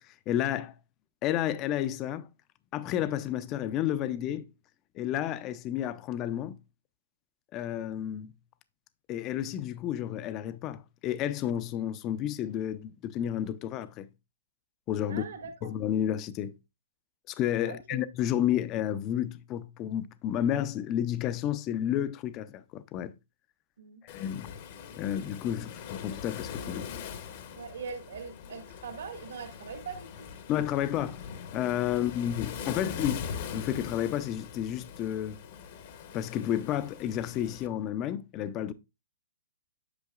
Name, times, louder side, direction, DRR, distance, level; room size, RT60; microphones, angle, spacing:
voice 1, 0.3-0.7 1.2-2.3 2.7-4.5 4.9-6.6 7.5-8.3 9.1-14.1 14.9-15.3 15.6-16.5 17.3-23.1 24.0-24.5 25.0-26.8 30.5-31.2 31.5-33.2 33.5-35.4 36.1-38.7, left 11 dB, 25° left, 0.4 m, -31 dB
voice 2, 15.1-15.7 17.7-18.0 23.8-24.0 25.6-25.7 27.6-30.3 31.9-32.0, right 5 dB, 75° right, 1.8 m, -42 dB
Waves surf, 24.1-37.7, left 7 dB, 45° left, 0.8 m, -42 dB
8.1 x 5.9 x 2.4 m
hypercardioid pair, 150°, 0 cm